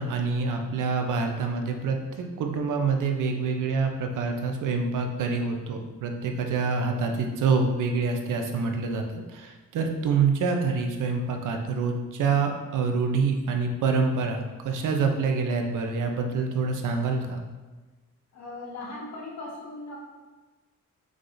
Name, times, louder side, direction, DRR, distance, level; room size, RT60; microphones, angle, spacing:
voice 1, 0.0-9.0 9.3-17.4, right 4 dB, 90° right, 4 dB, 0.6 m, -26 dB
voice 2, 18.3-20.0, left 2 dB, 65° left, -4 dB, 1.3 m, -38 dB
4.8 x 2.5 x 3.8 m, 1.2 s
wide cardioid pair, 150°, 30 cm